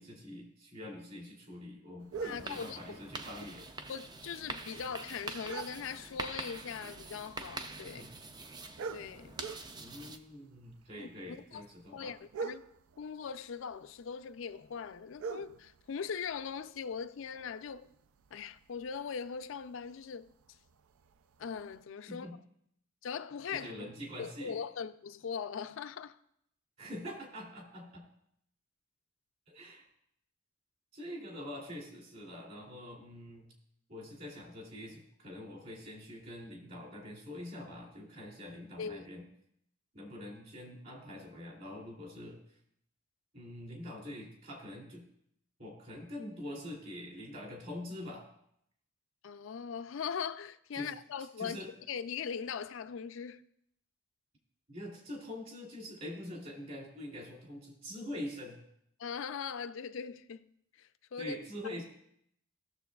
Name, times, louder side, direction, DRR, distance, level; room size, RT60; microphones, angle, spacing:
voice 1, 0.0-3.7 7.8-8.1 9.7-12.1 22.1-22.4 23.5-24.6 26.8-28.0 29.5-29.8 30.9-33.5 33.9-39.2 39.9-42.4 43.3-45.1 45.6-48.2 50.7-50.9 51.4-51.7 54.7-58.6 61.2-61.8, left 1 dB, 45° right, 2.6 m, -45 dB
sound 1, 2.0-21.8, right 5 dB, 85° right, 0.4 m, -49 dB
sound 2, 2.1-10.2, right 3 dB, 20° right, 0.4 m, -45 dB
voice 2, 2.2-3.0 3.9-8.0 8.9-9.4 11.0-11.6 11.9-12.6 13.0-17.9 18.3-20.3 21.4-22.4 23.0-23.7 24.2-26.2 38.8-39.0 49.2-51.6 51.9-53.4 59.0-61.4, left 6 dB, 70° left, 0.4 m, -40 dB
16.0 x 6.8 x 2.3 m
head